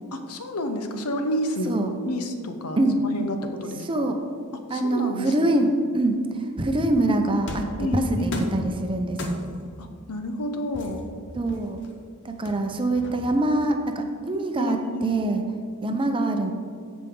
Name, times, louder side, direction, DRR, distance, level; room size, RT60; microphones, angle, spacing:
voice 1, 0.1-1.8 2.0-4.1 4.5-5.6 7.8-8.5 9.8-11.0 14.6-15.2, left 1 dB, 85° left, 6 dB, 0.9 m, -30 dB
voice 2, 3.9-4.2 4.7-6.2 6.6-9.4 11.4-11.8 12.2-15.4 15.8-16.5, right 1 dB, 25° right, 5 dB, 0.6 m, -24 dB
sound 1, 7.5-7.8 8.3-8.7 9.2-9.7 10.7-11.9 12.5-13.5, left 1 dB, 55° left, 0.9 m, -36 dB
14.5 x 5.1 x 3.8 m, 2.2 s
head